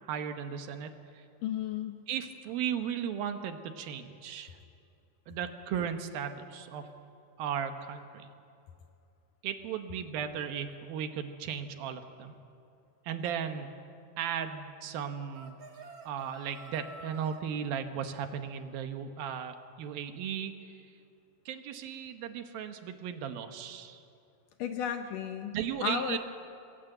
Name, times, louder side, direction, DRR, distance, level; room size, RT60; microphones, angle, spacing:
voice 1, 0.0-1.3 2.1-4.6 5.3-6.9 7.4-8.3 9.4-12.3 13.0-13.7 14.2-15.5 16.0-20.9 21.5-24.0 25.5-26.2, right 8 dB, 70° right, 7 dB, 2.8 m, -36 dB
voice 2, 1.4-2.0 24.6-26.2, left 8 dB, 75° left, 6 dB, 2.1 m, -34 dB
sound 1, 15.3-17.4, right 3 dB, 45° right, 2.5 m, -49 dB
26.5 x 19.5 x 7.9 m, 2.5 s
omnidirectional pair, 4.6 m